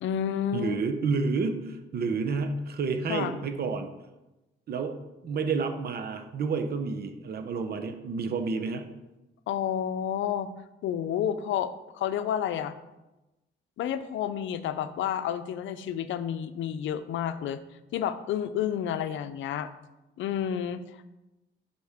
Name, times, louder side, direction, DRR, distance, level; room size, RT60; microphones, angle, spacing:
voice 1, 0.0-0.8 3.1-3.4 9.5-10.5 10.8-12.8 13.8-17.6 17.9-19.7 20.2-21.1, left 9 dB, 75° left, 12 dB, 0.6 m, -30 dB
voice 2, 0.5-3.9 4.7-5.0 5.2-8.9, right 4 dB, 50° right, 7 dB, 0.8 m, -30 dB
11.0 x 4.3 x 3.6 m, 1.0 s
cardioid pair, 90°, 20 cm